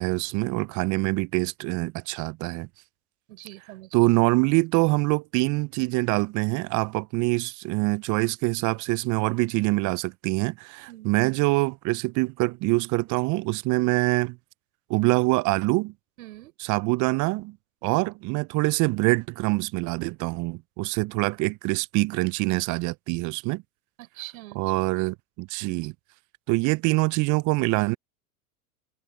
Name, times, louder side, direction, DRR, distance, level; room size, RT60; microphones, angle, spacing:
voice 1, 0.0-2.7 3.9-14.4 14.9-15.9 16.6-17.6 17.8-23.6 24.5-25.9 26.5-28.0, right 24 dB, 40° right, 0.9 m, -25 dB
voice 2, 3.3-4.0 10.9-11.1 16.2-16.5 17.8-18.0 24.0-24.6, right 17 dB, 65° right, 5.6 m, -43 dB
hypercardioid pair, 90°, 45 cm